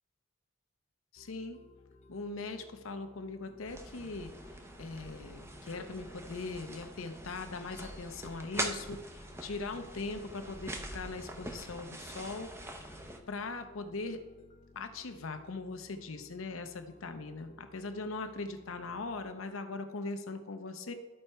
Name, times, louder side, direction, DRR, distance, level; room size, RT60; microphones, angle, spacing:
voice 1, 1.1-1.6 2.1-4.3 4.8-12.5 12.8-13.0 13.3-14.2 14.8-20.9, left 3 dB, 75° left, 8 dB, 0.7 m, -40 dB
sound 1, 1.2-19.3, left 2 dB, 35° left, 0.5 m, -58 dB
sound 2, 3.7-13.2, right 1 dB, 10° right, 0.6 m, -43 dB
12.5 x 4.4 x 4.5 m, 1.2 s
head